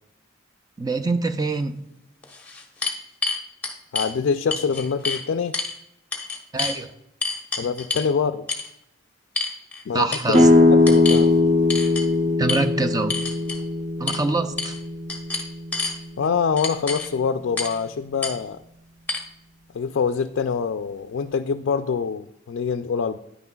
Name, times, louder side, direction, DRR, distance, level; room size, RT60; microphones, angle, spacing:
voice 1, 0.8-1.8 6.5-6.9 9.9-10.5 12.4-13.2 14.0-14.7, right 3 dB, 20° right, 0.5 m, -24 dB
sound 1, 1.6-1.7 2.2-4.1 4.5-5.2 5.5-5.8 6.1-6.8 7.2-8.1 8.5-8.7 9.4-9.8 10.1-10.5 10.9-11.2 11.7-12.1 12.5-12.6 13.1-13.6 14.1-14.2 14.6-14.8 15.1-16.0 16.6-17.1 17.6-17.8 18.2-18.3 19.1-19.2, left 4 dB, 10° left, 1.0 m, -28 dB
voice 2, 3.9-5.6 7.6-8.4 9.9-11.3 16.2-18.6 19.7-23.2, left 6 dB, 60° left, 0.3 m, -25 dB
sound 2, 10.3-15.9, left 2 dB, 35° right, 1.0 m, -19 dB
10.0 x 9.5 x 2.3 m
head